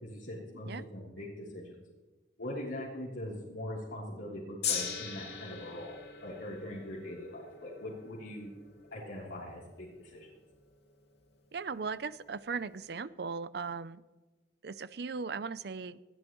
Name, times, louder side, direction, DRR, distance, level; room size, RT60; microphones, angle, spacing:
voice 1, 0.0-1.8 2.4-8.5 8.9-10.3, left 1 dB, 90° left, -7 dB, 3.4 m, -42 dB
Gong, 4.6-11.0 11.8-11.9, left 7 dB, 60° left, 2.6 m, -41 dB
voice 2, 11.5-14.0 14.6-16.0, right 5 dB, 60° right, 16 dB, 0.5 m, -38 dB
20.5 x 13.0 x 3.1 m, 1.2 s
head